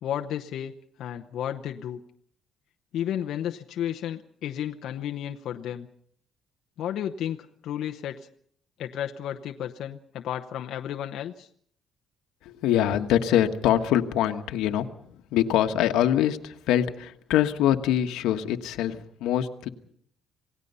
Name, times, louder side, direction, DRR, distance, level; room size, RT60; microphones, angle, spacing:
voice 1, 0.0-0.7 1.0-2.0 2.9-5.9 6.8-8.3 8.8-11.5, left 10 dB, 60° left, 5 dB, 0.9 m, -32 dB
voice 2, 12.4-14.9 15.3-19.7, left 11 dB, 85° left, 7 dB, 1.3 m, -24 dB
27.5 x 17.5 x 5.6 m, 0.62 s
cardioid pair, 170°, 0 cm